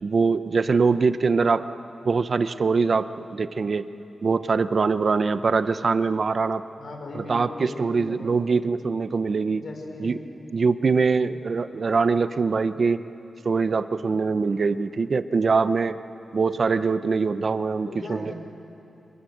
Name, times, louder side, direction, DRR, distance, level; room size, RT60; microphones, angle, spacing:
voice 1, 0.0-1.7 2.0-3.9 4.2-6.6 7.1-9.6 10.0-10.2 10.5-13.0 13.4-15.9 16.3-18.3, right 4 dB, 50° right, 12 dB, 0.7 m, -23 dB
voice 2, 6.7-8.4 9.5-10.2 17.8-18.3, left 2 dB, 65° left, 3 dB, 4.6 m, -38 dB
29.0 x 25.0 x 8.0 m, 2.9 s
wide cardioid pair, 105°, 0 cm